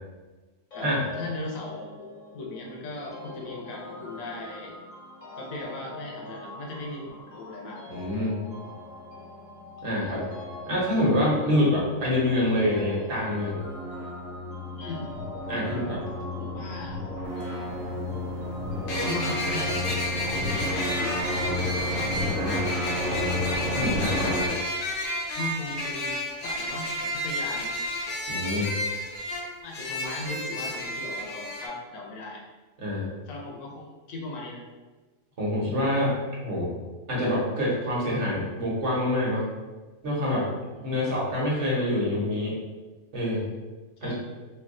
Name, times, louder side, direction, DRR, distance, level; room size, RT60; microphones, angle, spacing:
voice 1, 0.7-4.8 5.4-7.9 14.7-15.1 16.3-17.0 18.9-19.8 20.2-23.6 25.3-27.7 29.6-32.4 33.3-34.6 40.8-41.2 44.0-44.1, left 2 dB, 85° left, 0 dB, 1.1 m, -38 dB
sound 1, 0.7-19.9, left 1 dB, 70° left, 1.5 m, -43 dB
voice 2, 7.9-8.4 9.8-10.2 10.7-13.7 15.5-16.0 22.2-22.6 23.7-24.4 28.3-28.7 32.8-33.1 35.4-36.1 36.4-36.7 37.1-39.5 40.0-40.5 40.8-42.6 43.1-43.4 44.0-44.1, left 1 dB, 60° right, -5 dB, 1.3 m, -26 dB
sound 2, 9.9-24.5, left 1 dB, 90° right, 1.3 m, -32 dB
sound 3, 17.2-17.3 18.9-31.7, left 1 dB, 55° left, 0.7 m, -31 dB
3.3 x 2.3 x 3.6 m, 1.3 s
omnidirectional pair, 1.4 m